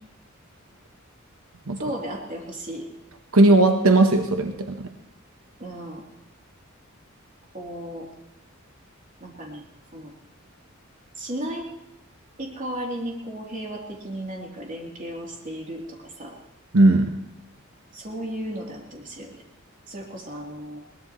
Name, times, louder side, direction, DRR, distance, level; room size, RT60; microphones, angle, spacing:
voice 1, 1.8-2.9 5.6-6.0 7.5-8.1 9.2-9.6 9.9-10.1 11.2-11.7 12.4-16.4 17.9-19.4 19.9-20.8, right 1 dB, 40° right, -1 dB, 3.2 m, -34 dB
voice 2, 3.3-4.9 16.7-17.1, right 2 dB, 85° right, 6 dB, 1.1 m, -17 dB
21.5 x 18.5 x 3.1 m, 0.89 s
head